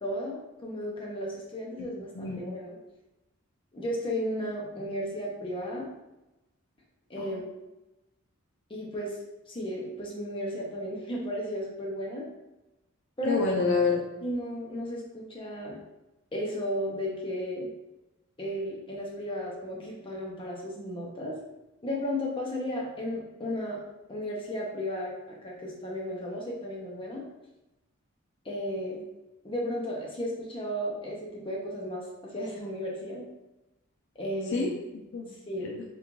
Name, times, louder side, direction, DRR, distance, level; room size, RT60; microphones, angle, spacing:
voice 1, 0.0-2.8 3.7-5.9 7.1-7.5 8.7-9.2 9.5-12.3 13.2-13.4 14.2-15.8 16.3-17.7 18.4-21.4 21.8-23.8 24.1-25.1 25.4-27.3 28.4-29.0 29.4-33.2 34.2-34.7 35.5-35.7, equal, 25° left, -3 dB, 0.7 m, -34 dB
voice 2, 13.3-14.0 34.5-35.3 35.6-35.8, left 4 dB, 60° left, 0 dB, 0.4 m, -28 dB
3.7 x 2.4 x 3.0 m, 1.0 s
head